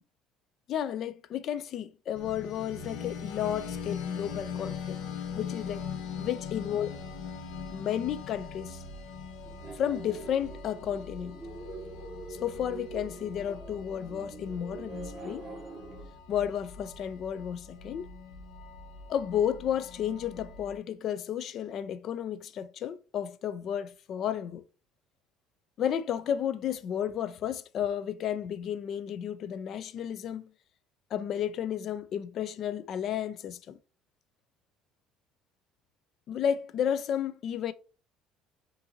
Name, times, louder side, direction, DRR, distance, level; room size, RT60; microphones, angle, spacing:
voice 1, 0.7-5.0 5.3-5.8 6.2-6.9 7.7-8.8 9.7-11.4 12.3-15.5 16.3-18.1 19.1-24.6 25.8-30.5 31.1-33.8 36.3-37.7, left 9 dB, 45° left, 0.3 m, -32 dB
sound 1, 2.1-20.8, left 6 dB, 85° left, 0.8 m, -42 dB
sound 2, 9.4-16.0, right 3 dB, 15° right, 1.4 m, -44 dB
5.6 x 2.6 x 2.7 m
cardioid pair, 160°, 0 cm